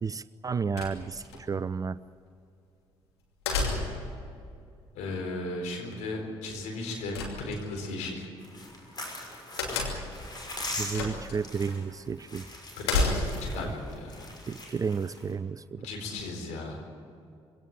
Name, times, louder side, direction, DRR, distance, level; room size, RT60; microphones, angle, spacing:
voice 1, 0.0-2.0 10.8-12.5 13.6-13.7 14.5-15.9, right 5 dB, 25° right, 17 dB, 0.5 m, -32 dB
sound 1, 0.8-1.4 3.5-4.1 7.1-7.9 9.6-10.2 10.9-11.4 11.7-11.8 12.8-13.5, left 3 dB, 75° left, 2.7 m, -29 dB
voice 2, 4.9-8.3 12.8-14.3 15.8-16.8, left 2 dB, 60° left, 2 dB, 4.3 m, -36 dB
sound 2, 8.4-15.3, left 1 dB, 30° left, 6.1 m, -41 dB
22.0 x 17.5 x 9.0 m, 2.4 s
figure-of-eight pair, 45°, 14 cm